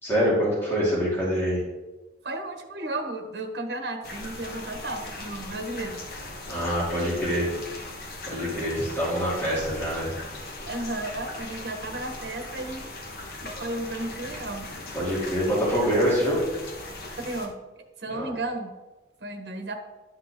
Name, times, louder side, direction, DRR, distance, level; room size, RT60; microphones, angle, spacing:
voice 1, 0.0-1.6 6.5-7.5 8.3-10.1 14.9-16.4 18.1-18.3, equal, 10° left, -8 dB, 2.8 m, -25 dB
voice 2, 2.2-6.0 10.6-12.9 13.4-14.7 17.2-17.6 18.0-18.7 19.2-19.7, right 2 dB, 70° right, 4 dB, 1.2 m, -33 dB
sound 1, 4.0-17.5, left 2 dB, 55° left, 1.2 m, -39 dB
11.5 x 5.9 x 3.6 m, 1.1 s
head